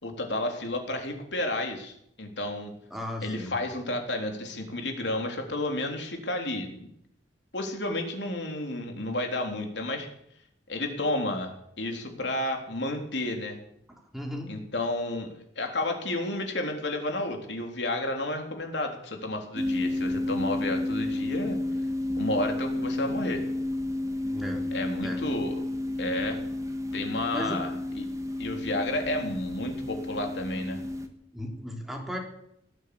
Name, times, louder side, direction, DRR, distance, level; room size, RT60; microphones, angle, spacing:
voice 1, 0.0-2.7 3.2-6.9 7.5-10.1 10.7-13.6 14.5-21.6 22.2-23.4 24.7-25.6 26.0-26.4 26.9-28.1 28.4-30.8, left 1 dB, 75° left, 3 dB, 3.5 m, -31 dB
voice 2, 2.9-3.6 14.1-14.5 24.3-24.7 25.0-25.2 27.3-27.6 31.3-32.2, equal, ahead, 0 dB, 3.5 m, -35 dB
sound 1, 19.6-31.1, left 1 dB, 20° right, 1.6 m, -31 dB
18.0 x 9.3 x 8.6 m, 0.73 s
head